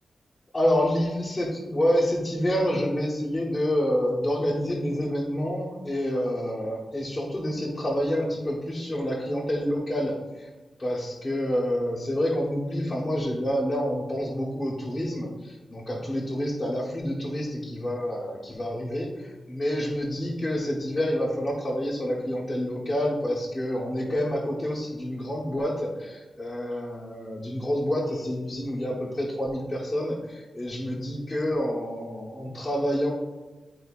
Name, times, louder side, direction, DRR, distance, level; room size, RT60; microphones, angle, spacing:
voice 1, 0.5-10.5 10.8-33.1, equal, 10° left, -9 dB, 1.2 m, -28 dB
10.5 x 4.6 x 2.4 m, 1.2 s
wide cardioid pair, 175°, 0 cm